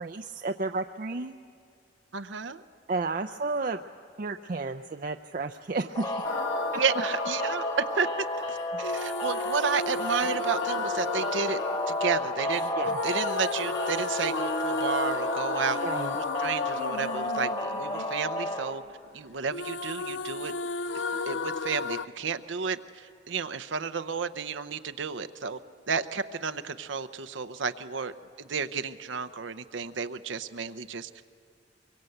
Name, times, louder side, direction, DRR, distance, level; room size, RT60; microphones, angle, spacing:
voice 1, 0.0-1.3 2.9-3.8 4.2-6.3 9.1-9.2 12.8-12.9 15.8-16.1, right 3 dB, 45° right, 6 dB, 0.5 m, -32 dB
voice 2, 2.1-2.6 6.8-8.1 8.5-11.6 11.9-12.7 13.0-15.8 16.1-18.8 19.1-20.5 20.9-25.6 25.9-28.1 28.4-31.2, right 5 dB, 85° right, 11 dB, 0.8 m, -32 dB
sound 1, 6.0-18.7, left 1 dB, 25° left, 1.4 m, -32 dB
sound 2, 6.2-19.2 19.5-22.1, left 4 dB, 80° left, 0.6 m, -34 dB
24.0 x 23.5 x 7.9 m, 2.4 s
head